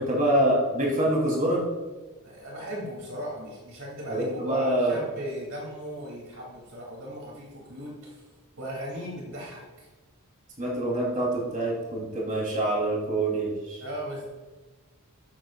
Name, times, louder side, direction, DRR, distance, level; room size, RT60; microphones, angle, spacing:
voice 1, 0.0-1.6 4.1-5.0 10.6-13.8, right 1 dB, 35° right, -4 dB, 4.0 m, -25 dB
voice 2, 2.2-8.3 8.6-9.9 13.8-14.3, equal, 65° right, -3 dB, 3.3 m, -37 dB
14.5 x 12.5 x 2.6 m, 1.3 s
head